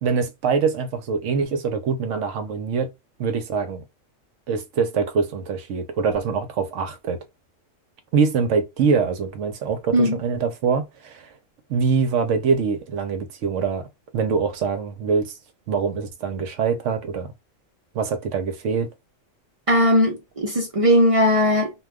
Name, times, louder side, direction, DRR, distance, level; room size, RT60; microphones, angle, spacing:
voice 1, 0.0-2.9 3.2-3.8 4.5-7.2 8.1-11.3 11.7-13.9 14.1-15.3 15.7-17.3 17.9-18.9, right 5 dB, 75° right, 0.9 m, -24 dB
voice 2, 19.7-21.7, equal, 35° right, 0.6 m, -18 dB
2.3 x 2.2 x 3.3 m
omnidirectional pair, 1.3 m